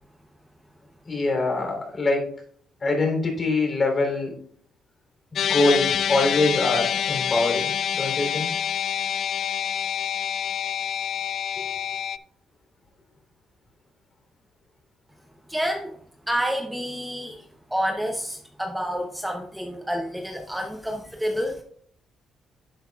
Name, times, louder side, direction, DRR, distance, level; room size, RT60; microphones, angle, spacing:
voice 1, 1.1-2.3 2.8-4.3 5.3-8.5, left 2 dB, 35° left, 2 dB, 3.3 m, -24 dB
sound 1, 5.4-12.2, left 9 dB, 65° left, 0.3 m, -26 dB
voice 2, 15.5-15.9 16.3-21.6, equal, 5° right, 2 dB, 0.8 m, -29 dB
10.5 x 8.0 x 2.4 m, 0.62 s
cardioid pair, 90°, 0 cm